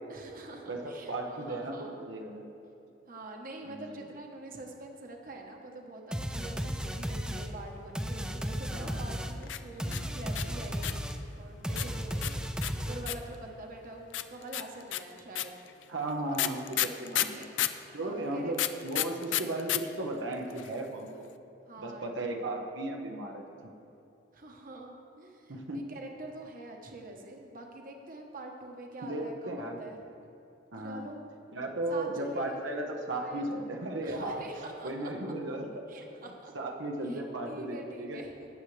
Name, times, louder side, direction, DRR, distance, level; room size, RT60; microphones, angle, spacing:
voice 1, 0.1-2.0 3.1-10.9 11.3-12.2 12.9-15.6 16.2-16.5 17.2-17.5 18.0-18.5 21.7-22.5 24.3-30.0 30.8-31.2 31.9-32.6 33.2-33.7 34.0-35.1 35.9-36.5 37.0-38.5, right 2 dB, 50° right, 1 dB, 1.1 m, -45 dB
voice 2, 0.7-2.4 3.6-3.8 8.7-9.0 15.9-17.5 17.9-21.2 21.8-23.7 25.5-25.8 29.0-29.8 30.7-31.0 31.5-34.4 34.8-35.7 36.5-38.2, right 1 dB, 90° right, 2 dB, 1.0 m, -35 dB
sound 1, 6.1-13.3, equal, 5° right, 0.5 m, -35 dB
sound 2, 9.4-11.1 11.8-13.4 14.1-17.8 18.5-19.8 20.1-20.2 20.3-20.8, left 13 dB, 75° left, 0.4 m, -31 dB
18.0 x 7.1 x 3.3 m, 2.9 s
head